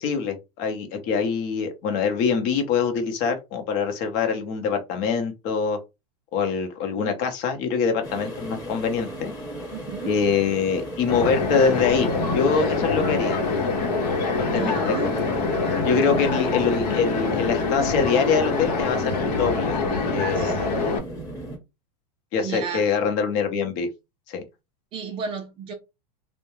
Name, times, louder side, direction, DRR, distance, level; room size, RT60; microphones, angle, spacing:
voice 1, 0.0-5.8 6.3-9.3 10.0-13.4 14.3-15.0 15.8-19.8 20.1-20.5 22.3-23.9 24.3-24.4, left 5 dB, 45° left, 0.7 m, -24 dB
sound 1, 8.0-21.6, equal, 15° left, 0.9 m, -36 dB
voice 2, 9.7-10.1 14.5-15.1 16.0-16.2 20.3-20.6 22.4-22.9 24.9-25.7, right 6 dB, 25° right, 0.4 m, -33 dB
sound 2, 11.1-21.0, left 3 dB, 80° left, 0.9 m, -25 dB
2.2 x 2.1 x 3.0 m
supercardioid pair, 145°, 21 cm